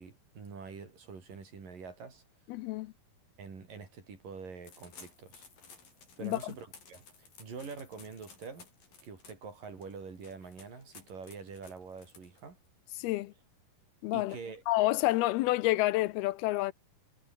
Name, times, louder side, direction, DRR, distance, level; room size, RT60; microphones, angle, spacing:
voice 1, 0.0-2.2 3.4-5.5 6.2-8.7 9.0-12.6 14.1-14.6, right 5 dB, 60° right, 6.6 m, -46 dB
voice 2, 2.5-2.9 6.2-6.5 13.0-13.3 14.0-14.4 14.7-16.7, left 18 dB, 80° left, 2.6 m, -29 dB
sound 1, 4.6-12.7, left 5 dB, 60° left, 7.3 m, -56 dB
omnidirectional pair, 4.5 m